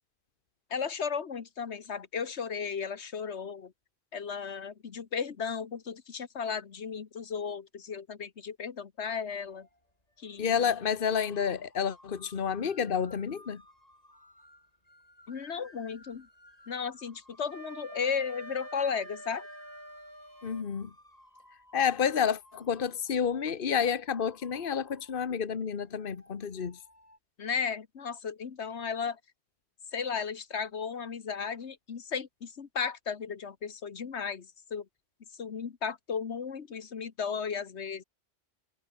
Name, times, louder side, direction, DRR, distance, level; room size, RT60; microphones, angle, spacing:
voice 1, 0.7-3.7 4.1-9.7 10.2-10.6 15.3-16.3 16.7-19.5 27.4-29.2 29.9-34.8 35.4-38.0, left 6 dB, 80° left, 1.6 m, -35 dB
sound 1, 9.3-27.2, left 1 dB, 35° left, 8.2 m, -59 dB
voice 2, 10.4-13.6 20.4-20.9 21.7-26.8, left 7 dB, 55° left, 1.3 m, -30 dB
Wind instrument woodwind instrument, 17.5-20.7, right 1 dB, 15° right, 4.7 m, -46 dB
omnidirectional pair, 1.1 m